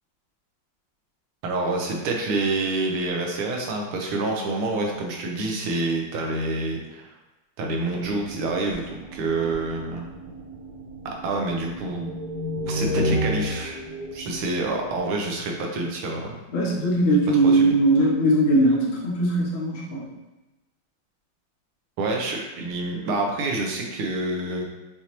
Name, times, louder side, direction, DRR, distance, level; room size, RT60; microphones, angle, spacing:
voice 1, 1.4-7.1 7.6-10.0 11.0-12.1 12.6-13.8 14.1-16.4 17.4-17.7 22.0-24.6, right 2 dB, 90° right, 1 dB, 1.7 m, -27 dB
sound 1, 8.0-15.0, left 1 dB, 60° right, 1.6 m, -32 dB
voice 2, 16.5-20.1, right 1 dB, 55° left, -3 dB, 0.9 m, -20 dB
6.1 x 2.8 x 2.9 m, 1.1 s
omnidirectional pair, 2.3 m